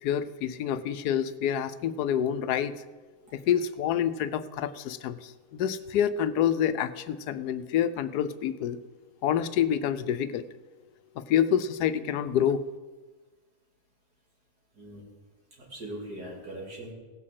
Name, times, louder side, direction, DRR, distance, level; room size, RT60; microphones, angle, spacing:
voice 1, 0.0-2.8 3.3-8.8 9.2-10.5 11.1-12.7, left 9 dB, 85° left, 13 dB, 1.2 m, -27 dB
voice 2, 15.6-16.9, right 1 dB, 80° right, -3 dB, 3.7 m, -40 dB
16.5 x 6.4 x 7.6 m, 1.3 s
omnidirectional pair, 1.7 m